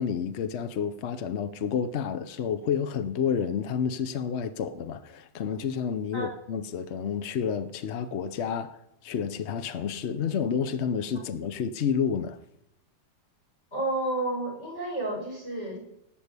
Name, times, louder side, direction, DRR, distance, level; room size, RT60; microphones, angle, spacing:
voice 1, 0.0-12.4, left 7 dB, 60° left, 0.7 m, -30 dB
voice 2, 13.7-15.8, right 2 dB, 35° left, 6.5 m, -31 dB
18.5 x 7.5 x 8.2 m
omnidirectional pair, 2.0 m